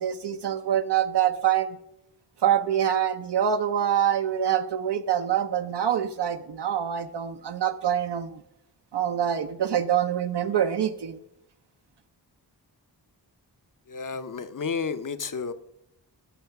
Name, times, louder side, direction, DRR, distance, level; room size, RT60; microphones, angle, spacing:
voice 1, 0.0-1.7 2.4-8.4 8.9-11.2, right 9 dB, 80° right, 7 dB, 0.7 m, -25 dB
voice 2, 13.9-15.5, left 5 dB, 50° left, 12 dB, 0.8 m, -31 dB
14.0 x 6.4 x 5.8 m, 0.83 s
wide cardioid pair, 85°, 41 cm